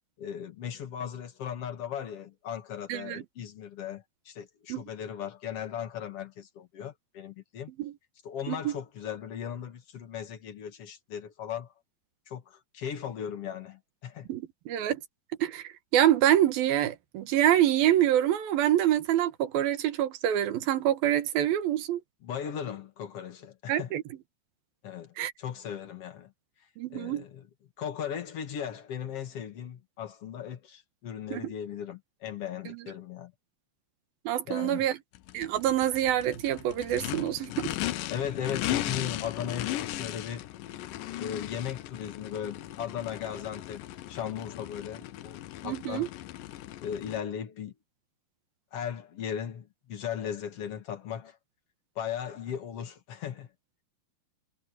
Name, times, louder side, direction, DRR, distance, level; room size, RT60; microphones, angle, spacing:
voice 1, 0.2-7.7 8.2-11.7 12.3-14.3 22.2-23.9 24.8-26.3 26.9-27.4 27.8-33.3 34.5-34.8 38.1-40.5 41.2-46.1 46.8-47.7 48.7-51.4 52.0-53.5, left 8 dB, 50° left, 2.2 m, -37 dB
voice 2, 2.9-3.2 4.7-4.8 7.8-7.9 8.5-8.8 14.3-15.0 15.4-22.0 23.7-24.0 25.2-25.3 26.8-27.2 31.3-31.5 32.7-32.8 34.2-35.0 35.3-37.7 45.6-46.1, right 12 dB, 90° right, 3.3 m, -26 dB
Race car auto racing / Idling / Accelerating revving vroom, 35.2-47.2, left 14 dB, 80° left, 2.4 m, -37 dB
omnidirectional pair, 4.1 m